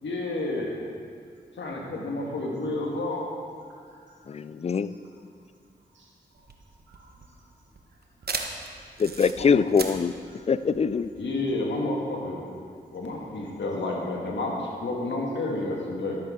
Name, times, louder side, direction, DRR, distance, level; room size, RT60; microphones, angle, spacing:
voice 1, 0.0-0.8 1.6-3.2 9.4-9.6 11.1-12.4 12.9-16.2, left 2 dB, 75° left, -1 dB, 1.7 m, -30 dB
voice 2, 1.6-2.4 3.9-4.3 5.9-7.1 7.4-7.5 8.2-8.3 10.3-10.5, right 2 dB, 85° right, -4 dB, 1.6 m, -52 dB
voice 3, 4.3-4.9 9.0-10.2 10.5-11.1, left 6 dB, 35° left, 15 dB, 0.4 m, -23 dB
sound 1, 6.4-11.5, right 4 dB, 55° right, 1.0 m, -37 dB
13.5 x 7.7 x 3.7 m, 2.3 s
cardioid pair, 40°, 19 cm